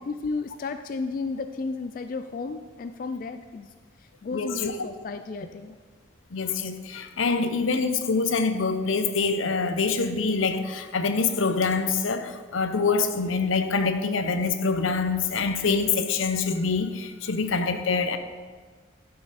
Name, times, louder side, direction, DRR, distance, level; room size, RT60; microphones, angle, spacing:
voice 1, 0.0-3.7 4.2-5.8, left 4 dB, 45° left, 8 dB, 0.3 m, -33 dB
voice 2, 4.3-4.9 6.3-18.2, left 4 dB, 85° left, 9 dB, 0.7 m, -25 dB
12.0 x 5.8 x 4.1 m, 1.5 s
head